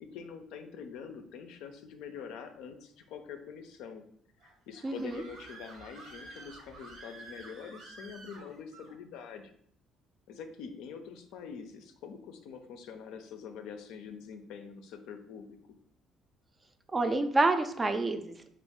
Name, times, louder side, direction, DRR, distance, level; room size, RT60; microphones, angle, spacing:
voice 1, 0.0-4.0 4.4-9.5 10.3-15.6, left 6 dB, 75° left, 6 dB, 0.4 m, -45 dB
Screaming, 4.4-8.9, right 2 dB, 70° right, 0.9 m, -50 dB
voice 2, 4.8-5.2 16.9-18.5, right 2 dB, 30° right, 7 dB, 0.4 m, -28 dB
3.0 x 2.4 x 3.5 m, 0.65 s
hypercardioid pair, 60°, 0 cm